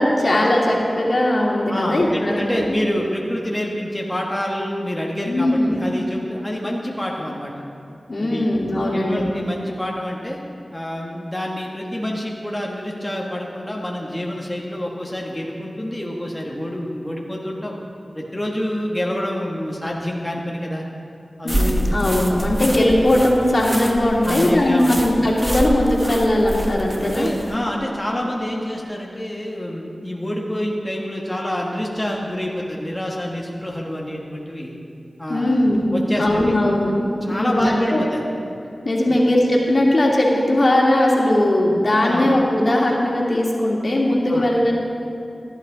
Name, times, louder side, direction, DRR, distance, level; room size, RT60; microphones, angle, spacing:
voice 1, 0.0-2.8 5.3-5.8 8.1-9.3 21.4-27.3 35.3-35.9 36.2-38.0 38.8-44.7, left 1 dB, 55° left, -2 dB, 2.2 m, -19 dB
voice 2, 1.7-7.6 8.2-8.5 8.9-10.4 10.7-17.7 18.1-20.8 21.4-21.9 24.2-25.1 27.0-34.8 35.2-35.6 35.9-36.5 37.2-38.2 39.1-39.2 42.0-42.3 44.3-44.4, equal, 15° left, -2 dB, 1.6 m, -27 dB
sound 1, 21.5-27.5, right 1 dB, 15° right, 1.2 m, -27 dB
14.5 x 11.5 x 4.0 m, 2.6 s
cardioid pair, 50°, 0 cm